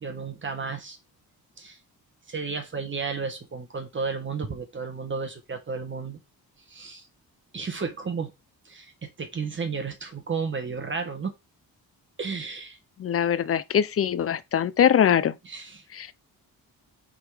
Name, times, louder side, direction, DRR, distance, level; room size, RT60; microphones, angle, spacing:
voice 1, 0.0-1.0 1.6-1.8 2.3-6.2 6.7-7.0 7.5-8.3 8.6-11.3 12.2-12.8 15.4-15.8, right 5 dB, 30° right, 1.3 m, -33 dB
voice 2, 13.0-15.3 15.9-16.1, left 9 dB, 40° left, 0.5 m, -22 dB
5.9 x 3.9 x 4.9 m
wide cardioid pair, 150°, 36 cm